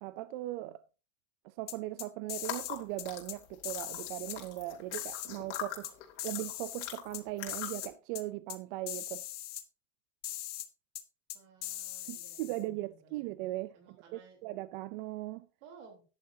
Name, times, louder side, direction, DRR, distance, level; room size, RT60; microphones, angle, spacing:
voice 1, 0.0-0.8 1.4-6.0 6.2-9.2 12.1-15.5, right 17 dB, 50° right, 0.5 m, -39 dB
sound 1, 1.7-2.7 3.0-3.4 3.6-4.4 4.9-5.9 6.2-7.2 7.5-7.9 8.1-8.2 8.5-8.6 8.9-9.6 10.2-10.7 10.9-11.0 11.3-12.6, left 13 dB, 25° left, 0.9 m, -40 dB
sound 2, 2.3-7.9, left 11 dB, 70° left, 3.1 m, -43 dB
voice 2, 11.3-13.2 13.7-14.4 15.6-16.0, right 5 dB, 85° right, 3.5 m, -57 dB
13.5 x 10.5 x 2.7 m
cardioid pair, 180°, 35 cm